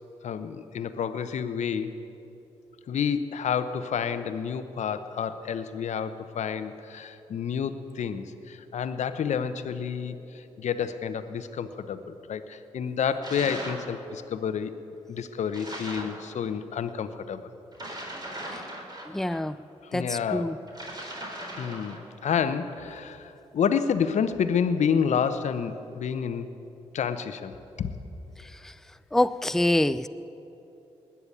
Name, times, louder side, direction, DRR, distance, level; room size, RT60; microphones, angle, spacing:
voice 1, 0.2-2.0 2.9-14.7 15.1-17.5 19.8-20.6 21.5-26.5 26.9-27.9, left 7 dB, 70° left, 11 dB, 0.9 m, -29 dB
sound 1, 13.2-13.9 15.5-16.2 17.7-19.4 20.7-22.1, right 1 dB, 35° right, 3.7 m, -38 dB
voice 2, 19.1-19.6 19.9-20.6 28.6-28.7 29.1-30.1, left 1 dB, 5° left, 14 dB, 0.5 m, -25 dB
20.0 x 7.1 x 8.7 m, 2.9 s
supercardioid pair, 45°, 13 cm